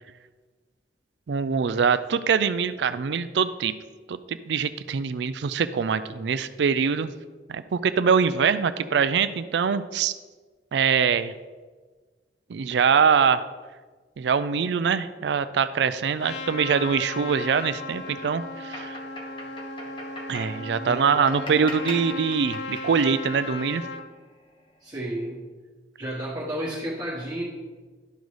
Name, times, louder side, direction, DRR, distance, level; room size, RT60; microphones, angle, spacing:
voice 1, 1.3-3.7 4.1-7.1 7.5-10.1 10.7-11.3 12.5-13.4 14.2-19.0 20.3-23.8, right 6 dB, 70° right, 13 dB, 0.4 m, -23 dB
Trumpet, 16.2-24.0, left 3 dB, 70° left, 0.7 m, -36 dB
sound 1, 18.0-24.7, left 1 dB, 30° left, 1.3 m, -42 dB
voice 2, 20.8-21.5 24.8-25.4 26.0-27.4, right 1 dB, 20° right, -10 dB, 1.5 m, -32 dB
12.0 x 4.0 x 4.8 m, 1.4 s
head